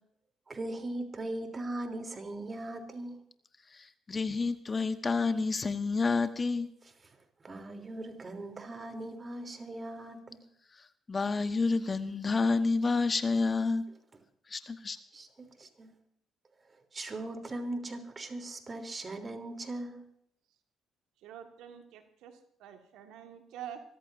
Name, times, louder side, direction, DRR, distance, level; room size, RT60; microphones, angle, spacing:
voice 1, 0.5-3.2 7.4-10.4 15.1-15.9 16.9-20.0, right 2 dB, 35° right, 6 dB, 3.3 m, -39 dB
voice 2, 3.7-6.7 11.1-13.8 14.5-15.0, left 4 dB, 35° left, 10 dB, 1.2 m, -29 dB
voice 3, 21.2-23.8, right 9 dB, 75° right, 6 dB, 1.8 m, -47 dB
25.5 x 14.5 x 2.7 m, 0.69 s
hypercardioid pair, 50°, 0 cm